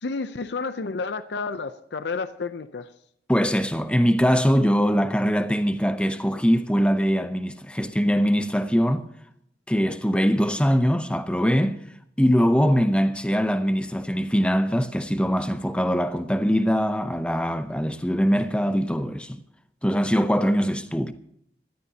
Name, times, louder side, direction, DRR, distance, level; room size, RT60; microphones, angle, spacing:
voice 1, 0.0-2.9, left 4 dB, 75° left, 0.6 m, -30 dB
voice 2, 3.3-9.1 9.7-11.8 12.2-19.4 19.8-21.1, equal, 5° left, 0.6 m, -22 dB
20.5 x 14.0 x 2.8 m
head